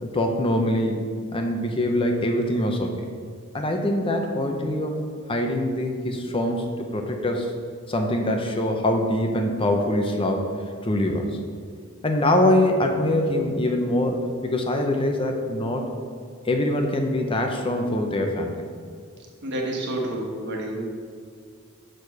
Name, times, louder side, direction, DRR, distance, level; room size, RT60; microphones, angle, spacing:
voice 1, 0.0-3.0 3.5-5.0 5.3-7.5 7.9-10.5 10.8-11.3 12.0-15.9 16.4-18.6, left 1 dB, 25° left, 3 dB, 0.7 m, -24 dB
voice 2, 19.4-20.9, right 1 dB, 55° right, -1 dB, 1.5 m, -29 dB
6.6 x 5.1 x 6.2 m, 2.1 s
head